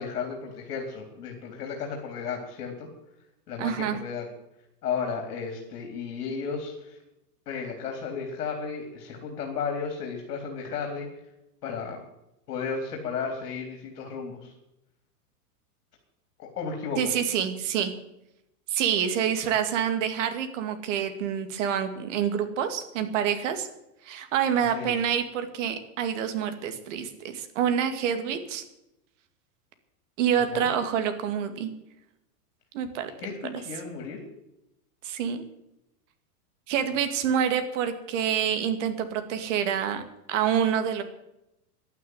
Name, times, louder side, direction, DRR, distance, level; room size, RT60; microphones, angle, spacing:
voice 1, 0.0-2.9 3.5-4.3 4.8-7.0 7.5-11.1 11.6-12.0 12.5-14.5 16.4-17.1 24.6-24.9 30.3-30.7 33.2-34.2, left 5 dB, 70° left, 3 dB, 3.8 m, -34 dB
voice 2, 3.6-4.0 17.0-17.9 18.7-23.7 24.0-28.6 30.2-31.7 32.7-33.1 33.5-33.6 35.0-35.4 36.7-40.0 40.3-41.0, right 8 dB, 50° right, 8 dB, 2.3 m, -27 dB
11.5 x 9.5 x 9.6 m, 0.85 s
supercardioid pair, 165°, 47 cm